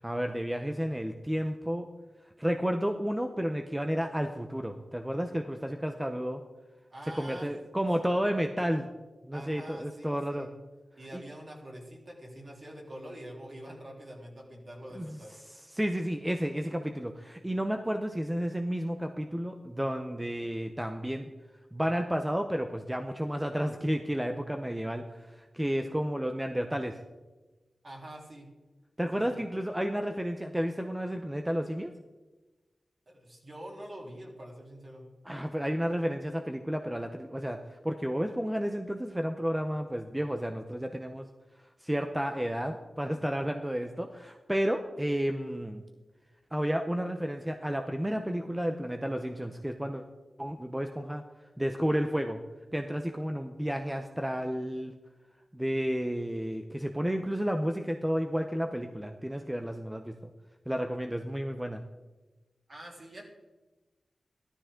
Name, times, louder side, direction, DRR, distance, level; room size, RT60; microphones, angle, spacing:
voice 1, 0.0-1.9 2.4-6.4 7.1-8.9 9.2-10.5 11.1-11.2 15.0-15.2 15.5-21.3 21.7-27.0 29.0-31.9 35.2-41.3 41.8-45.8 46.5-50.0 50.4-51.2 51.6-52.4 52.7-54.9 55.5-60.1 60.7-61.8, equal, 10° right, 5 dB, 0.7 m, -31 dB
voice 2, 6.9-7.5 8.0-8.1 9.3-10.5 11.0-15.3 27.8-28.5 29.1-29.4 33.1-35.1 62.7-63.2, right 1 dB, 45° right, -2 dB, 3.5 m, -45 dB
14.5 x 12.5 x 3.8 m, 1.2 s
wide cardioid pair, 105°, 0 cm